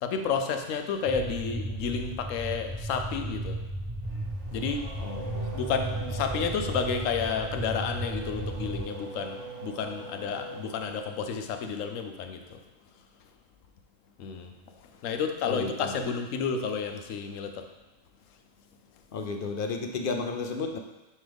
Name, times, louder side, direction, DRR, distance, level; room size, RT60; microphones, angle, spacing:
voice 1, 0.0-3.6 4.5-4.9 5.5-12.6 14.2-14.5 15.0-17.7, left 6 dB, 80° left, 6 dB, 1.0 m, -31 dB
sound 1, 1.1-8.8, right 1 dB, 25° right, 0.9 m, -35 dB
Race car auto racing / Accelerating revving vroom, 4.0-11.3, right 3 dB, 65° right, 1.2 m, -41 dB
voice 2, 5.0-5.5 15.5-16.0 19.1-20.8, left 4 dB, 60° left, 4 dB, 0.6 m, -33 dB
9.5 x 3.3 x 3.4 m, 1.1 s
omnidirectional pair, 1.3 m